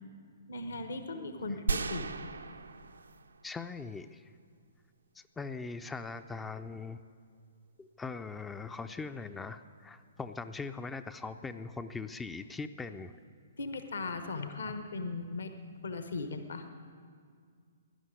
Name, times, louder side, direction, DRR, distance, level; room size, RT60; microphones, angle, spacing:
voice 1, 0.5-2.3 13.6-16.7, left 3 dB, 65° left, 8 dB, 1.0 m, -38 dB
sound 1, 1.7-3.6 3.9-4.0, right 5 dB, 70° right, 0.6 m, -36 dB
voice 2, 3.4-4.3 5.1-7.0 7.8-13.2, left 4 dB, 10° left, 9 dB, 0.4 m, -41 dB
12.5 x 11.0 x 9.4 m, 2.1 s
figure-of-eight pair, 120°, 0 cm